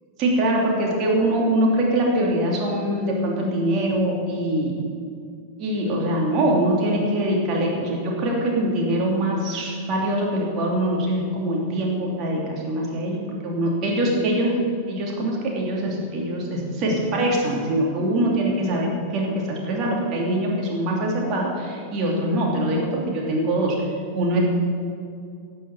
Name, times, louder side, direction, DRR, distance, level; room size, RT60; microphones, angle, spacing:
voice 1, 0.2-4.7 5.6-14.6 14.9-23.8 24.1-24.4, right 1 dB, 35° right, -2 dB, 2.9 m, -23 dB
12.5 x 7.6 x 7.3 m, 2.4 s
figure-of-eight pair, 90°, 0 cm